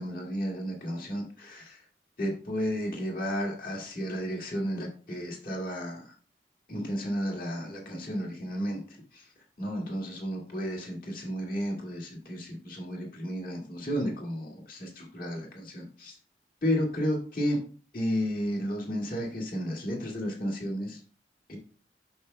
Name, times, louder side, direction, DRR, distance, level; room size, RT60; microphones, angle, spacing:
voice 1, 0.0-1.8 2.2-6.1 6.7-9.3 9.6-16.2 16.6-17.6 17.9-21.0 21.5-21.6, equal, 55° left, -1 dB, 2.0 m, -32 dB
8.3 x 6.5 x 2.2 m, 0.39 s
head